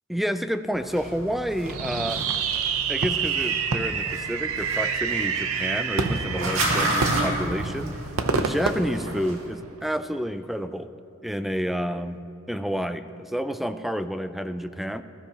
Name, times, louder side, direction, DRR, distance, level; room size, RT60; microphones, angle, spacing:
voice 1, 0.1-2.2 2.9-8.0 8.3-10.9 11.2-15.0, equal, ahead, 10 dB, 0.4 m, -29 dB
sound 1, 0.7-9.4, right 1 dB, 70° right, 2.1 m, -32 dB
Fireworks, 1.7-9.8, right 5 dB, 90° right, 0.7 m, -27 dB
20.0 x 13.0 x 2.9 m, 2.6 s
head